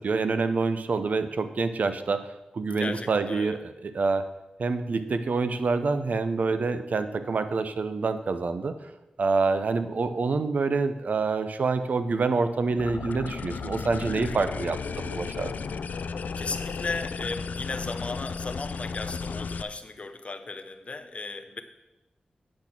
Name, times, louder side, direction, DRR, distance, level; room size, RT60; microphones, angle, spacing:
voice 1, 0.0-2.3 2.5-4.3 4.6-8.7 9.2-15.5, right 4 dB, 65° right, 10 dB, 0.7 m, -27 dB
voice 2, 2.8-3.6 16.4-21.6, left 3 dB, 45° left, 7 dB, 0.8 m, -36 dB
sound 1, 12.8-19.6, left 5 dB, 80° left, 0.4 m, -34 dB
8.7 x 6.1 x 5.9 m, 1.0 s
cardioid pair, 65°, 3 cm